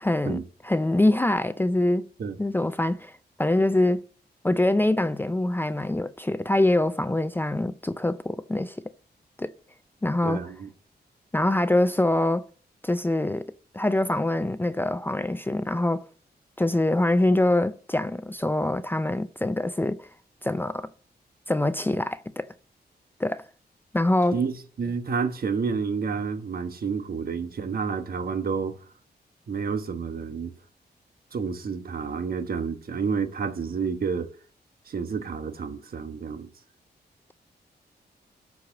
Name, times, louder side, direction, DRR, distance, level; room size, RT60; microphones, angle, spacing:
voice 1, 0.0-2.1 2.4-3.1 3.4-4.1 4.4-8.8 9.4-9.5 10.0-10.4 11.3-12.5 12.8-13.4 13.7-16.0 16.6-20.1 20.4-20.9 21.5-22.5 23.2-23.4 23.9-24.4, left 1 dB, 10° left, 0.4 m, -24 dB
voice 2, 10.2-10.7 24.3-28.8 29.5-30.5 31.3-34.3 34.9-36.5, right 5 dB, 60° right, 1.2 m, -29 dB
12.0 x 4.9 x 6.9 m
wide cardioid pair, 115°, 17 cm